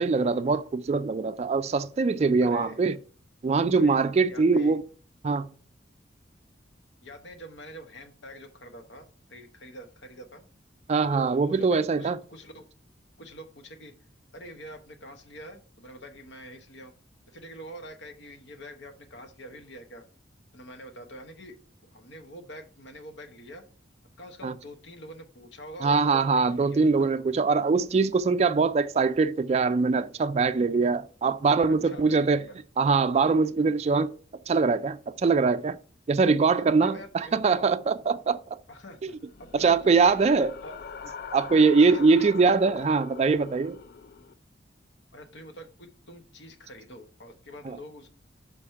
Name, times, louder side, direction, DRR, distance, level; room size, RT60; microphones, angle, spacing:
voice 1, 0.0-3.0 3.4-4.8 5.2-5.5 10.9-12.2 24.4-24.5 25.8-32.4 32.8-34.1 34.5-35.8 36.1-38.6 39.0-39.1 39.5-40.5 41.3-43.8 47.6-47.8, right 4 dB, 35° right, 0.3 m, -23 dB
voice 2, 2.4-2.8 3.8-4.8 7.0-10.4 11.0-12.7 13.2-13.9 14.3-16.9 17.3-20.0 20.5-21.6 21.9-23.6 24.2-27.3 31.7-32.6 36.6-37.6 38.7-40.2 40.6-40.8 41.5-42.5 45.1-48.2, equal, 70° left, 1.2 m, -45 dB
sound 1, 39.2-44.3, left 6 dB, 55° left, 0.4 m, -42 dB
5.2 x 4.9 x 5.7 m
head